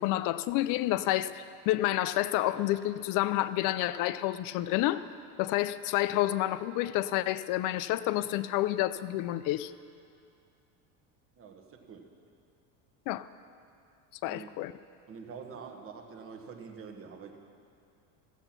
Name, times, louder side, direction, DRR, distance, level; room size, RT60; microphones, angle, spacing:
voice 1, 0.0-5.1 5.4-9.7 13.1-13.3 14.2-14.7, left 15 dB, 55° left, 0.5 m, -29 dB
voice 2, 11.4-12.1 14.3-14.5 15.1-17.4, right 6 dB, 35° right, 1.4 m, -46 dB
15.5 x 7.9 x 5.9 m
cardioid pair, 130°, 38 cm